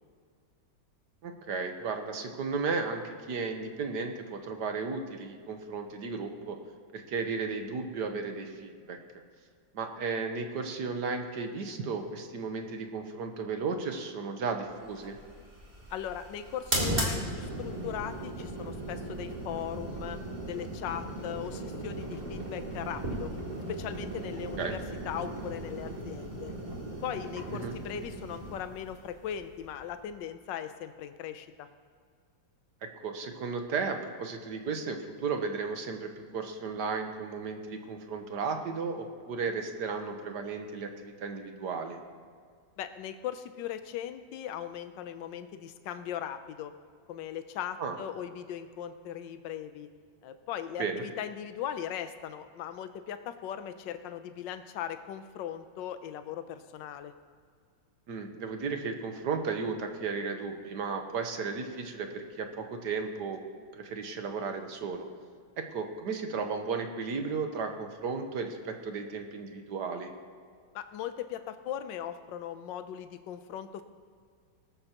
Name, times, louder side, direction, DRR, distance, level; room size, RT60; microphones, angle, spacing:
voice 1, 1.2-6.6 6.9-9.0 9.7-15.2 24.6-24.7 27.5-27.8 33.0-42.0 47.8-48.0 50.8-51.0 58.1-63.4 63.7-65.1 65.6-70.1, right 4 dB, 65° right, 5 dB, 1.6 m, -34 dB
sound 1, 14.9-30.2, right 1 dB, 20° right, 2.6 m, -37 dB
voice 2, 15.9-20.2 20.5-23.3 23.7-26.5 27.0-31.7 42.8-46.7 47.1-49.9 50.2-57.1 70.7-73.8, left 10 dB, 75° left, 10 dB, 1.4 m, -39 dB
19.0 x 13.0 x 3.0 m, 2.1 s
omnidirectional pair, 2.0 m